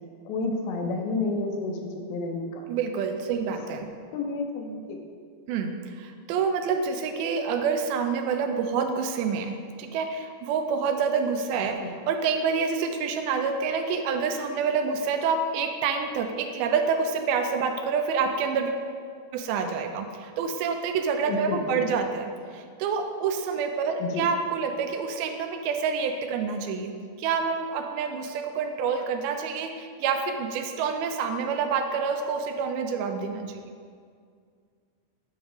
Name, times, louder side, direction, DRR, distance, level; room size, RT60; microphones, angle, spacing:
voice 1, 0.3-2.6 3.6-3.7 4.1-5.0 11.8-11.9 21.2-21.9 24.0-24.3, left 3 dB, 80° left, 3 dB, 2.4 m, -30 dB
voice 2, 2.7-3.9 5.5-18.7 19.3-33.6, right 5 dB, 85° right, 6 dB, 2.4 m, -27 dB
8.7 x 3.1 x 4.9 m, 2.1 s
omnidirectional pair, 4.3 m